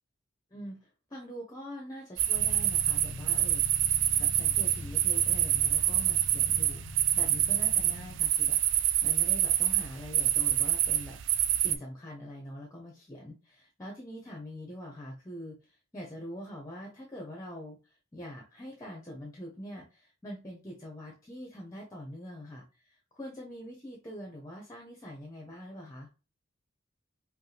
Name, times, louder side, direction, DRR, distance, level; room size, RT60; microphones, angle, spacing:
voice 1, 0.5-3.9 4.2-11.2 11.6-26.1, equal, 15° left, 0 dB, 0.8 m, -44 dB
sound 1, 2.2-11.8, right 12 dB, 60° right, 0.4 m, -26 dB
sound 2, 2.3-8.2, left 2 dB, 75° left, 0.6 m, -43 dB
5.2 x 2.2 x 3.3 m, 0.32 s
head